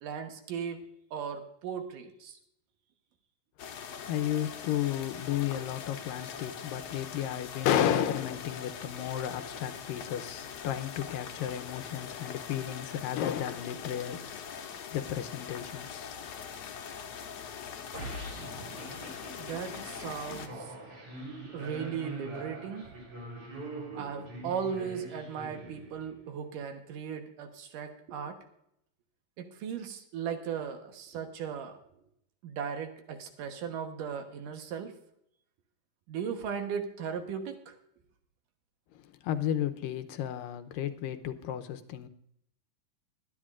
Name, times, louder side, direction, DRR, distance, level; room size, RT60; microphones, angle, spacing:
voice 1, 0.0-0.8 1.1-2.4 19.4-20.7 21.4-22.9 24.0-28.4 29.4-31.8 32.4-34.9 36.1-37.7, right 7 dB, 70° right, 2.6 m, -37 dB
sound 1, 3.6-20.5, left 7 dB, 60° left, 1.9 m, -42 dB
voice 2, 4.0-16.2 38.9-42.1, left 10 dB, 80° left, 2.4 m, -33 dB
sound 2, 17.9-26.2, right 1 dB, 40° right, 4.6 m, -43 dB
21.5 x 10.5 x 2.5 m
omnidirectional pair, 4.0 m